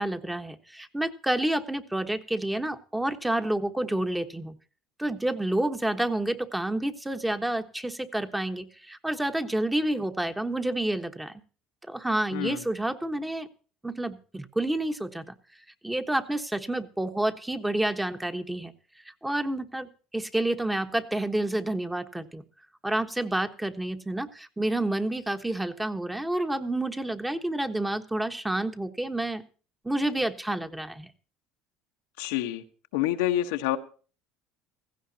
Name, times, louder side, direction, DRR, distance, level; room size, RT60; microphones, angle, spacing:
voice 1, 0.0-4.5 5.0-11.3 11.9-13.5 13.8-15.3 15.8-18.7 19.2-22.4 22.8-29.4 29.8-31.1, right 1 dB, 10° right, 7 dB, 1.2 m, -29 dB
voice 2, 12.3-12.6 32.2-32.6 32.9-33.8, left 13 dB, 85° left, 6 dB, 1.2 m, -27 dB
16.5 x 15.0 x 2.8 m, 0.38 s
supercardioid pair, 105°, 0 cm